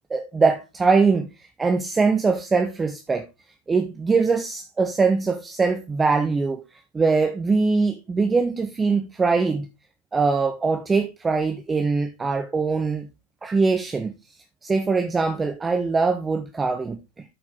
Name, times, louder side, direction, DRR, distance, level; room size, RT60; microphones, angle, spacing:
voice 1, 0.1-1.3 1.6-3.2 3.7-6.6 6.9-9.7 10.1-13.1 13.4-14.1 14.6-17.2, right 4 dB, 15° right, 0.7 m, -22 dB
11.0 x 4.7 x 3.7 m
figure-of-eight pair, 90°, 0 cm